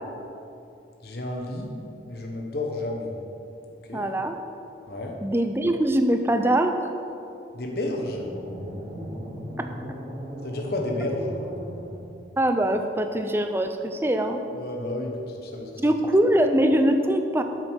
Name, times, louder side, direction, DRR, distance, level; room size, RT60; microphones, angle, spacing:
voice 1, 1.0-1.7 2.0-3.2 3.8-4.1 4.9-5.2 7.5-8.3 10.4-11.3 14.5-15.8, left 1 dB, 60° left, 0 dB, 1.2 m, -31 dB
voice 2, 3.9-4.3 5.2-6.7 9.6-9.7 12.4-14.4 15.8-17.4, right 1 dB, 15° right, 6 dB, 0.5 m, -22 dB
sound 1, 8.1-12.4, equal, 35° right, 2.8 m, -37 dB
9.0 x 8.0 x 6.2 m, 2.6 s
head